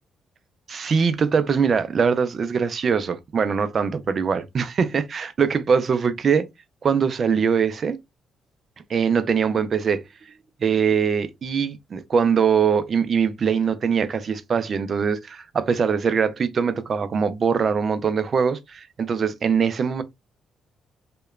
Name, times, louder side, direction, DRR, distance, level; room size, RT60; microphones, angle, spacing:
voice 1, 0.7-6.5 6.8-8.0 8.9-10.3 10.6-20.0, right 6 dB, 45° right, 0.4 m, -22 dB
2.8 x 2.1 x 2.3 m
cardioid pair, 90°, 0 cm